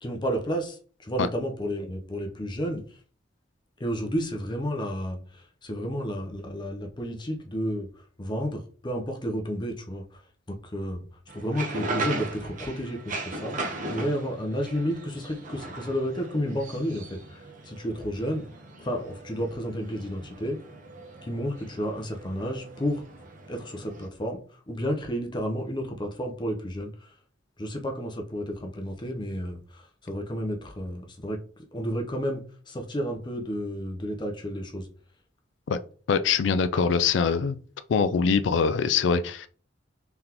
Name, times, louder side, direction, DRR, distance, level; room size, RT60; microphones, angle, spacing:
voice 1, 0.0-2.8 3.8-7.9 8.2-10.2 10.5-11.0 11.3-13.6 13.9-18.5 18.8-20.6 21.2-23.0 23.5-27.1 27.6-31.4 31.7-34.9, equal, 25° left, 0.7 m, -31 dB
sound 1, 11.3-24.1, right 2 dB, 45° right, 0.9 m, -38 dB
voice 2, 36.1-37.6 37.9-39.5, left 5 dB, 70° left, 0.4 m, -23 dB
3.9 x 3.4 x 2.9 m
head